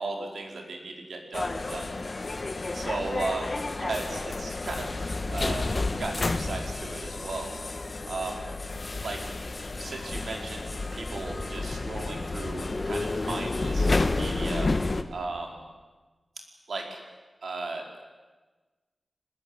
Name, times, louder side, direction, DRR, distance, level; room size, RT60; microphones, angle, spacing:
voice 1, 0.0-2.4 2.7-7.5 8.1-8.5 9.0-9.3 9.7-14.7 15.1-15.6 16.7-17.0 17.4-17.9, right 3 dB, 90° right, 2 dB, 5.0 m, -36 dB
sound 1, 1.3-15.0, left 3 dB, 40° left, 1.5 m, -30 dB
25.0 x 20.5 x 9.9 m, 1.3 s
wide cardioid pair, 110°, 0 cm